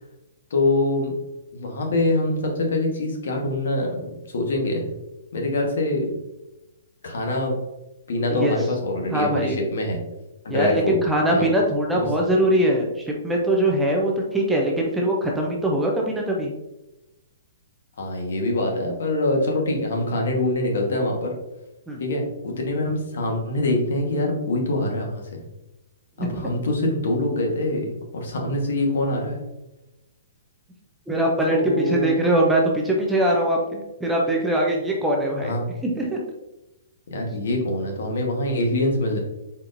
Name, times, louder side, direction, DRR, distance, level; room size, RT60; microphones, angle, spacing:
voice 1, 0.5-1.1 1.5-4.8 5.3-6.1 7.0-7.6 8.1-10.0 10.4-11.0 11.3-11.4 11.9-12.1 18.0-21.3 22.0-25.4 26.2-29.4 31.5-32.2 35.4-35.7 37.1-39.2, left 2 dB, 60° left, 1 dB, 1.2 m, -24 dB
voice 2, 9.1-9.6 10.5-16.5 21.9-22.0 26.2-26.5 31.1-35.5 35.8-36.2, right 1 dB, 5° right, -1 dB, 0.4 m, -22 dB
4.3 x 3.9 x 2.5 m, 0.97 s
hypercardioid pair, 175°, 0 cm